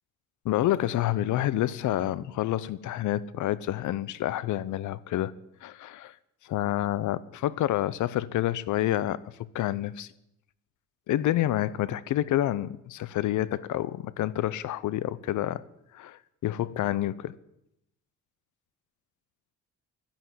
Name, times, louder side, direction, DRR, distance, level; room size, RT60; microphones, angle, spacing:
voice 1, 0.4-5.3 5.6-6.1 6.4-9.2 9.5-10.1 11.1-15.6 15.9-17.4, left 13 dB, 80° left, 0.8 m, -28 dB
12.0 x 10.5 x 9.8 m
cardioid pair, 90°, 30 cm